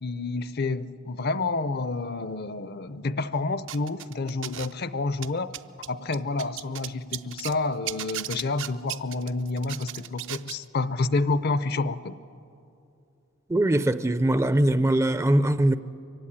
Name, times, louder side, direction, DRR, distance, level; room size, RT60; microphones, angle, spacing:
voice 1, 0.0-5.5 5.9-12.1, left 3 dB, 50° left, 0.6 m, -29 dB
sound 1, 3.7-4.8 5.1-7.6 7.9-10.6, right 12 dB, 60° right, 0.6 m, -36 dB
voice 2, 13.5-15.8, right 1 dB, 15° right, 0.5 m, -21 dB
23.5 x 16.0 x 9.9 m
head